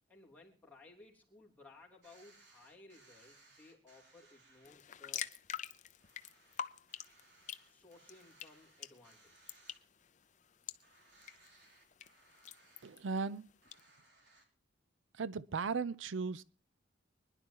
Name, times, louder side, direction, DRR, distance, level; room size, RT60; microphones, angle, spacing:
voice 1, 0.1-5.3 7.6-9.6, left 2 dB, 10° left, 3.4 m, -60 dB
sound 1, 2.0-4.7 5.2-5.3 5.7-5.8 6.0-10.2 10.4-10.5 10.8-12.9 13.6-14.5, right 2 dB, 65° right, 3.5 m, -65 dB
sound 2, 4.6-13.8, left 9 dB, 40° left, 0.6 m, -48 dB
voice 2, 12.8-13.5 15.1-16.4, right 4 dB, 85° right, 0.5 m, -37 dB
24.5 x 11.0 x 2.9 m
head